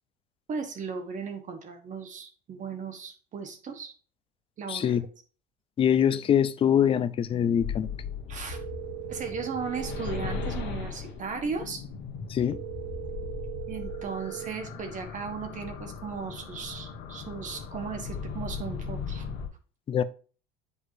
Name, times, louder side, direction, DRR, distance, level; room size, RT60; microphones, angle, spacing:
voice 1, 0.5-3.9 4.6-5.0 8.3-8.6 9.1-11.8 13.7-19.3, right 5 dB, 35° right, 1.1 m, -36 dB
voice 2, 4.7-5.0 5.8-7.9 12.3-12.6 19.9-20.0, left 9 dB, 25° left, 0.5 m, -24 dB
sound 1, 7.6-19.5, left 5 dB, 55° left, 1.4 m, -38 dB
sound 2, 8.5-10.5 12.5-14.5, right 20 dB, 75° right, 0.6 m, -39 dB
8.2 x 4.7 x 2.7 m
supercardioid pair, 105°, 21 cm